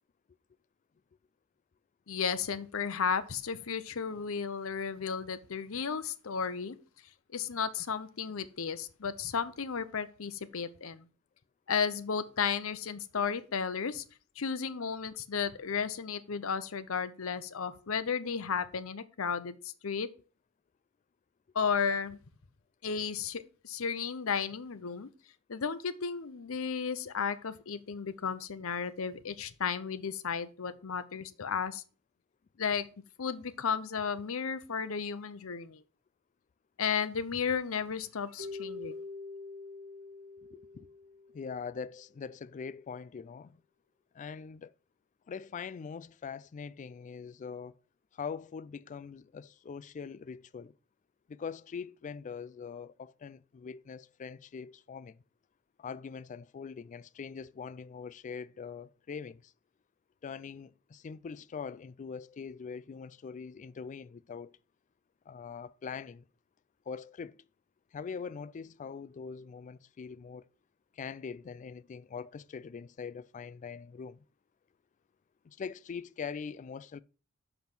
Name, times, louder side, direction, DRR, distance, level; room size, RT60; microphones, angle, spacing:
voice 1, 2.1-6.8 7.3-11.0 11.7-14.0 14.4-20.1 21.5-22.2 22.8-25.1 25.5-31.8 32.6-32.9 33.2-35.8 36.8-39.0, left 6 dB, 70° left, 0.7 m, -34 dB
Keyboard (musical), 38.4-41.6, left 3 dB, 65° right, 1.7 m, -44 dB
voice 2, 40.5-40.9 41.3-43.6 44.1-44.7 45.3-47.8 48.1-50.7 51.3-55.2 55.8-59.5 60.2-64.6 65.3-66.2 66.9-67.4 67.9-70.5 70.9-74.2 75.4-77.0, left 6 dB, 35° left, 0.3 m, -42 dB
6.0 x 5.4 x 5.9 m
head